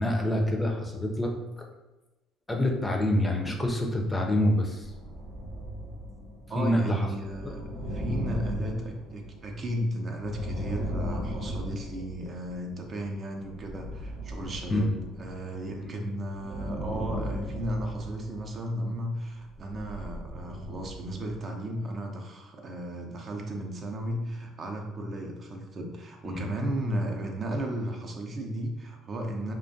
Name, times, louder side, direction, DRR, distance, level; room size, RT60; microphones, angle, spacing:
voice 1, 0.0-1.7 2.5-4.9 6.6-7.1 7.4-7.5 14.7-15.0 15.8-15.9 26.2-26.5, left 1 dB, 20° left, 1 dB, 0.5 m, -26 dB
sound 1, 4.8-12.7 13.3-15.7 16.3-18.8 19.5-21.3, equal, 75° right, 0.7 m, -37 dB
voice 2, 6.5-7.6 7.9-14.9 15.2-29.5, right 1 dB, 45° right, 2 dB, 0.5 m, -34 dB
2.4 x 2.2 x 2.6 m, 1.1 s
hypercardioid pair, 65°, 0 cm